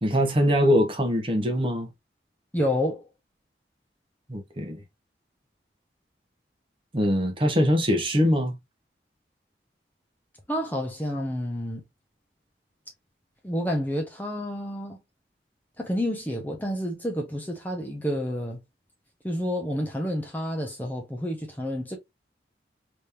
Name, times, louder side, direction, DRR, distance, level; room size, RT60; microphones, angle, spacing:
voice 1, 0.0-1.9 4.3-4.8 6.9-8.5, equal, 30° right, 1.0 m, -22 dB
voice 2, 2.5-3.1 10.5-11.8 13.4-15.0 15.8-18.6 19.2-22.0, equal, 10° left, 0.8 m, -29 dB
3.5 x 3.2 x 2.6 m
head